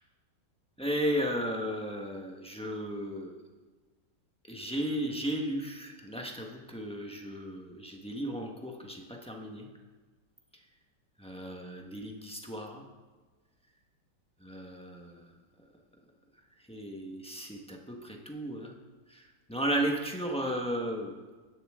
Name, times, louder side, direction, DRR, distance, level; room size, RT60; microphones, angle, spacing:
voice 1, 0.8-3.3 4.5-9.7 11.2-12.8 14.4-15.3 16.7-18.7 19.1-21.2, equal, 5° left, 0 dB, 1.2 m, -35 dB
15.5 x 11.0 x 3.7 m, 1.3 s
omnidirectional pair, 1.9 m